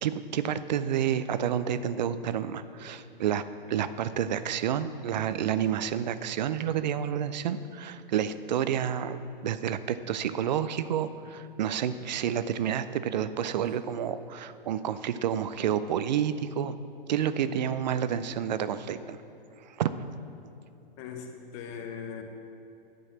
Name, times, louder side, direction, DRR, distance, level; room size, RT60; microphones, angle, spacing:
voice 1, 0.0-3.4 3.7-16.8 17.1-19.2 19.6-20.1, right 9 dB, 50° right, 12 dB, 0.4 m, -29 dB
voice 2, 21.0-22.2, left 7 dB, 30° left, 4 dB, 0.9 m, -39 dB
9.5 x 4.0 x 6.5 m, 2.8 s
hypercardioid pair, 125°, 29 cm